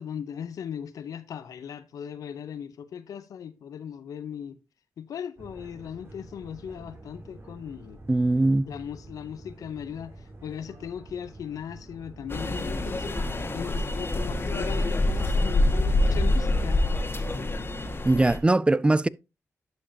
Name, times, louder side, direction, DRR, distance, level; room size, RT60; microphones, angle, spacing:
voice 1, 0.0-4.6 5.0-8.0 8.7-10.1 10.4-13.1 13.5-16.8, left 8 dB, 80° left, 0.7 m, -38 dB
sound 1, 5.4-13.7, right 1 dB, 45° right, 2.5 m, -47 dB
voice 2, 8.1-8.7 18.0-19.1, right 2 dB, 20° right, 0.3 m, -21 dB
sound 2, 12.3-18.4, left 1 dB, 40° left, 1.5 m, -26 dB
11.5 x 5.3 x 2.7 m
cardioid pair, 50°, 6 cm